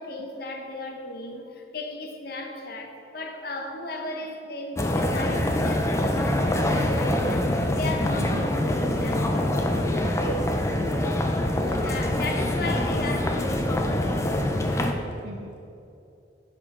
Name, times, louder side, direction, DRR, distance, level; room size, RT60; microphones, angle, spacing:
voice 1, 0.0-11.0 11.6-14.3 15.1-15.2, left 1 dB, 55° left, 3 dB, 0.9 m, -36 dB
sound 1, 4.8-14.9, left 1 dB, 15° left, 0.4 m, -25 dB
voice 2, 8.2-8.5 11.7-12.3 15.2-15.6, right 2 dB, 80° right, 2 dB, 0.5 m, -40 dB
9.9 x 5.8 x 3.7 m, 2.8 s
head